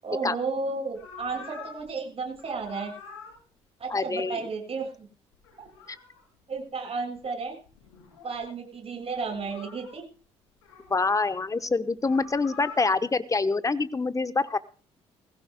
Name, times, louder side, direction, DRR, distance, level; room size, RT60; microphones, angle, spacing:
voice 1, 0.0-2.9 3.8-5.1 6.5-7.6 8.2-10.0, right 4 dB, 45° right, 1 dB, 6.7 m, -33 dB
sound 1, 0.9-1.9 2.3-3.4 5.3-6.2 7.2-7.3 7.7-8.4 9.1-9.9 10.6-11.4 12.0-12.9, left 4 dB, 85° left, 6.1 m, -46 dB
voice 2, 3.9-4.4 10.9-14.6, left 3 dB, 25° left, 14 dB, 1.1 m, -26 dB
21.5 x 16.0 x 2.3 m, 0.37 s
hypercardioid pair, 50°, 14 cm